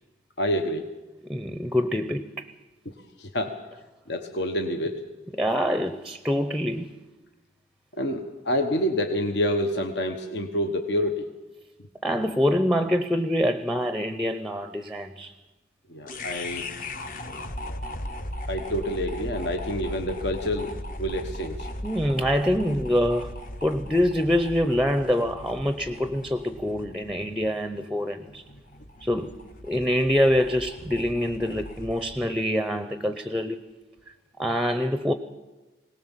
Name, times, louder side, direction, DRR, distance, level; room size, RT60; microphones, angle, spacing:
voice 1, 0.4-0.9 2.8-2.9 3.2-3.6 4.1-5.1 7.9-11.3 15.9-16.6 18.5-20.7 21.0-21.7, equal, 70° left, 1.2 m, -27 dB
voice 2, 1.3-2.5 5.4-6.9 12.0-15.3 21.8-23.4 23.6-28.4 29.0-29.4 29.7-33.7 34.4-35.1, equal, 5° right, 0.6 m, -25 dB
sound 1, 16.1-32.3, left 1 dB, 45° left, 1.0 m, -38 dB
21.5 x 18.5 x 7.3 m
head